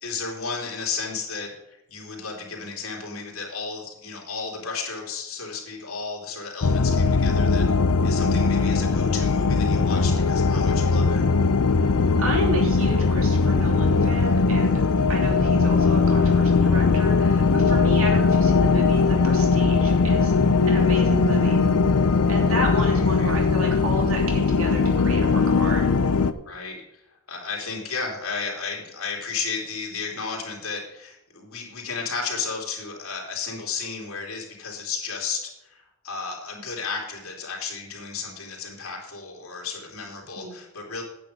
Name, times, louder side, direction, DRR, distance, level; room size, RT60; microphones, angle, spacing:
voice 1, 0.0-7.7 8.0-11.2 22.4-23.4 26.4-27.0 27.3-41.0, left 4 dB, 70° left, -1 dB, 3.2 m, -33 dB
sound 1, 6.6-26.3, left 4 dB, 90° left, 0.7 m, -20 dB
voice 2, 12.2-14.8 15.1-20.4 20.7-21.6 22.3-25.8 40.4-40.5, right 1 dB, 70° right, 1 dB, 3.0 m, -32 dB
9.3 x 8.7 x 5.2 m, 0.90 s
head